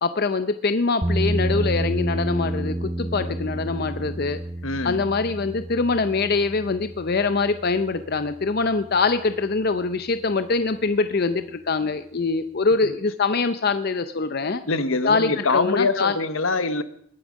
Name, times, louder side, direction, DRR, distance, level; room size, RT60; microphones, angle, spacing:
voice 1, 0.0-4.4 4.8-14.6 15.0-16.2, left 4 dB, 50° left, 10 dB, 0.6 m, -24 dB
sound 1, 1.0-9.1, right 1 dB, 15° right, 0.6 m, -30 dB
voice 2, 4.6-5.0 14.7-16.8, left 3 dB, 75° left, 12 dB, 1.0 m, -23 dB
20.0 x 8.8 x 6.3 m, 0.68 s
head